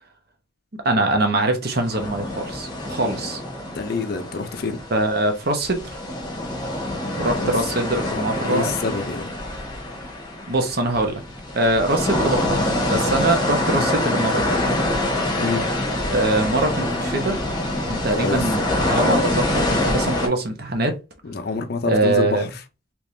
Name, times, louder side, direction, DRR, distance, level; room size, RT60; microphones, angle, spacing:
voice 1, 0.8-3.4 4.9-5.8 7.2-8.8 10.5-11.2 11.5-12.6 12.9-14.6 16.1-17.4 17.9-20.9 21.8-22.5, right 2 dB, 50° right, 0.8 m, -23 dB
sound 1, 1.8-5.3 5.6-20.3, left 1 dB, 20° left, 1.0 m, -25 dB
voice 2, 3.7-4.8 7.3-7.6 8.1-9.3 13.7-13.9 15.4-15.7 18.1-18.5 21.2-22.6, left 4 dB, 50° left, 0.5 m, -27 dB
3.5 x 3.0 x 2.6 m
head